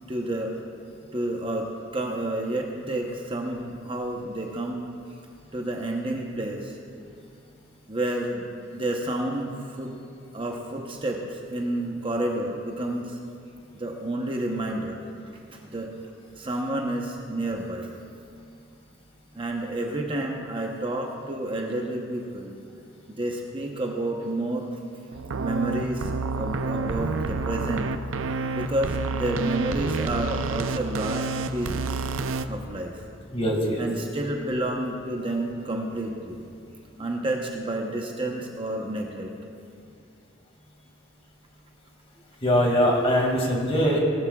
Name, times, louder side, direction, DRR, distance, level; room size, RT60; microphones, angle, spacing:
voice 1, 0.1-0.6 1.1-4.9 5.5-6.7 7.9-10.0 10.3-13.2 13.7-15.0 15.7-15.9 16.4-17.9 19.3-22.5 23.2-24.7 25.4-26.1 26.3-27.9 28.5-31.9 32.5-32.9 33.8-36.4 37.0-39.3, right 1 dB, 25° right, 0 dB, 0.9 m, -30 dB
sound 1, 25.1-32.5, right 3 dB, 85° right, 0.5 m, -29 dB
voice 2, 33.3-33.9 42.4-44.0, equal, 30° left, -1 dB, 2.2 m, -22 dB
19.0 x 13.5 x 2.4 m, 2.5 s
head